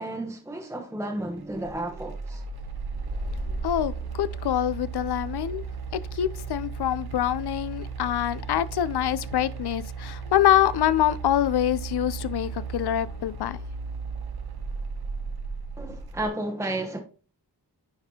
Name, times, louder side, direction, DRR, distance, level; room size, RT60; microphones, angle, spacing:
voice 1, 0.0-2.4 15.8-17.0, right 1 dB, 5° right, 0.8 m, -32 dB
sound 1, 1.6-16.3, right 4 dB, 65° right, 0.9 m, -35 dB
voice 2, 3.6-5.6 5.9-13.6, left 11 dB, 75° left, 0.5 m, -25 dB
9.3 x 4.2 x 2.8 m
wide cardioid pair, 75°, 40 cm